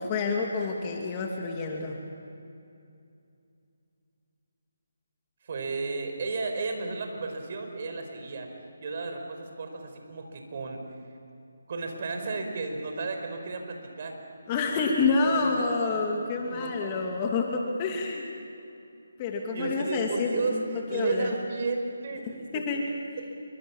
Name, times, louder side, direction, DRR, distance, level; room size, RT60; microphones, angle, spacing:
voice 1, 0.0-2.0 14.5-18.2 19.2-21.3 22.5-22.8, left 4 dB, 25° left, 1 dB, 2.6 m, -28 dB
voice 2, 5.4-8.5 8.8-10.8 11.7-14.2 15.2-16.1 16.5-17.1 19.5-22.8, right 3 dB, 45° right, 4 dB, 4.8 m, -33 dB
27.5 x 24.5 x 7.3 m, 2.6 s
figure-of-eight pair, 160°, 0 cm